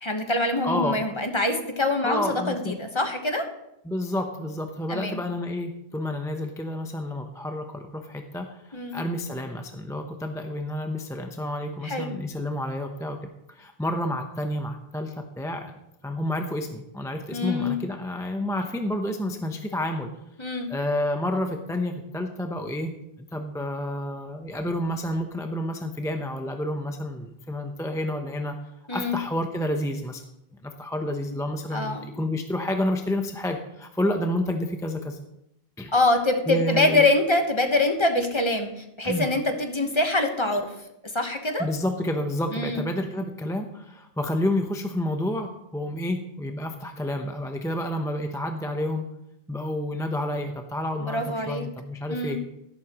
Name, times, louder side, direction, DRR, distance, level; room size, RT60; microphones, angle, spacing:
voice 1, 0.0-3.5 4.9-5.2 8.7-9.0 11.8-12.1 17.3-17.8 20.4-20.7 28.9-29.2 31.7-32.1 35.9-40.7 41.1-41.7 42.5-42.9 51.0-51.6 52.1-52.4, left 2 dB, 25° left, 5 dB, 1.2 m, -24 dB
voice 2, 0.6-1.0 2.0-2.7 3.8-13.2 13.5-15.7 16.0-20.1 20.7-22.9 23.3-28.6 28.9-30.2 30.6-35.2 35.8-35.9 36.5-37.1 39.0-39.3 41.6-49.1 49.5-52.4, left 1 dB, 5° left, 4 dB, 0.6 m, -29 dB
13.0 x 11.5 x 3.0 m, 0.82 s
omnidirectional pair, 1.1 m